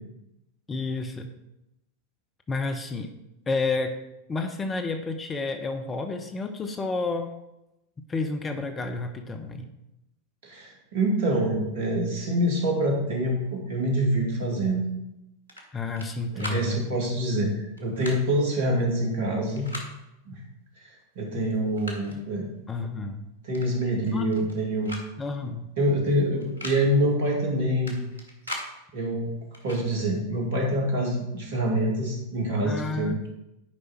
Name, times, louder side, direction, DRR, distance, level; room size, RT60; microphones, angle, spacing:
voice 1, 0.7-1.3 2.5-3.1 3.5-3.9 4.3-7.3 8.1-9.7 15.7-16.8 22.7-23.3 24.0-24.5 25.2-25.7 32.6-33.3, left 3 dB, 20° left, 6 dB, 0.9 m, -30 dB
voice 2, 10.4-14.9 16.3-19.7 20.3-20.4 21.2-22.4 23.4-25.0 25.8-28.0 28.9-29.3 29.6-33.2, right 1 dB, 60° right, 0 dB, 2.5 m, -26 dB
Pistol holstering, 15.5-16.1 16.4-16.6 17.8-18.2 19.5-19.9 21.0-21.1 21.5-22.2 23.5-23.7 24.0-24.6 24.9-25.1 25.3-25.4 26.4-26.8 27.9-28.7 29.5-29.8, left 1 dB, 85° right, 1.6 m, -38 dB
10.5 x 5.1 x 4.5 m, 0.89 s
figure-of-eight pair, 90°, 0 cm